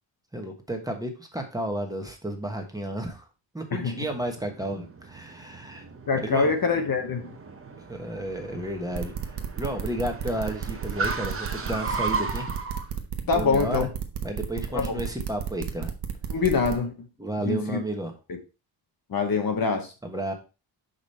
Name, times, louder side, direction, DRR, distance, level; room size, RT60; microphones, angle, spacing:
voice 1, 0.3-3.3 3.5-5.8 6.2-6.5 7.9-12.5 13.2-13.9 14.2-15.9 17.2-18.1 20.0-20.3, right 1 dB, 10° right, 1.2 m, -32 dB
Car, 3.9-12.9, right 4 dB, 30° right, 0.9 m, -36 dB
voice 2, 6.1-7.3 13.3-13.9 14.7-15.0 16.3-16.9 17.4-17.8 18.3-18.4 19.1-19.9, left 5 dB, 50° left, 1.0 m, -25 dB
sound 1, 8.9-16.7, right 8 dB, 55° right, 1.1 m, -32 dB
6.0 x 5.2 x 4.2 m
wide cardioid pair, 145°, 46 cm